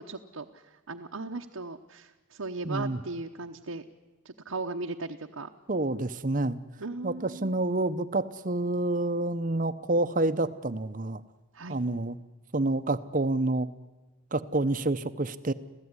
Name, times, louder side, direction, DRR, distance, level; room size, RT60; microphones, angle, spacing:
voice 1, 0.0-3.8 4.2-5.5 6.8-7.6 11.5-11.8, right 3 dB, 75° right, 2 dB, 1.0 m, -37 dB
voice 2, 2.6-3.0 5.7-6.6 7.0-11.2 11.7-12.2 12.5-13.7 14.3-15.5, right 2 dB, 35° right, 12 dB, 0.8 m, -28 dB
26.5 x 16.0 x 9.7 m, 1.1 s
head